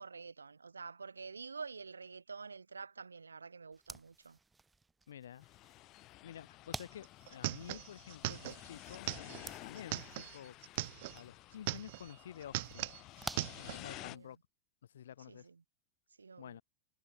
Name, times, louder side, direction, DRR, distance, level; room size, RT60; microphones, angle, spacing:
voice 1, 0.0-4.4 13.8-14.3 15.3-15.6 16.2-16.6, right 4 dB, 75° right, 0.9 m, -48 dB
sound 1, 3.7-14.4, right 3 dB, 10° right, 2.3 m, -52 dB
voice 2, 5.1-5.5 6.2-10.6 11.1-12.9 13.5-14.4 14.9-15.5 16.4-16.6, left 10 dB, 65° left, 3.6 m, -50 dB
sound 2, 5.4-14.2, left 18 dB, 40° left, 1.6 m, -53 dB
sound 3, 6.7-6.8 7.0-11.2 11.5-12.1 12.4-13.8, right 20 dB, 50° right, 0.6 m, -40 dB
figure-of-eight pair, 90°, 0 cm